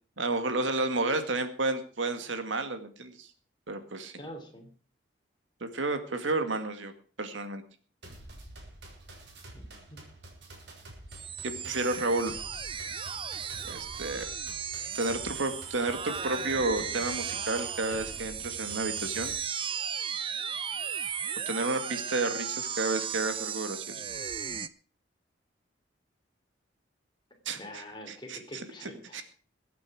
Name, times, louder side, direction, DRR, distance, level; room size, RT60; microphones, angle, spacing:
voice 1, 0.2-3.3 3.7-4.1 5.6-6.9 7.2-7.6 11.4-12.3 13.6-14.2 14.9-19.3 21.5-24.0 27.5-29.2, right 2 dB, 90° right, 8 dB, 2.0 m, -31 dB
voice 2, 4.2-4.7 9.5-10.0 27.6-29.2, left 1 dB, 25° left, 4 dB, 3.0 m, -45 dB
sound 1, 8.0-19.3, right 1 dB, 65° right, 4.5 m, -48 dB
sound 2, 11.1-24.7, right 7 dB, 25° right, 0.6 m, -36 dB
22.0 x 8.5 x 4.9 m, 0.39 s
head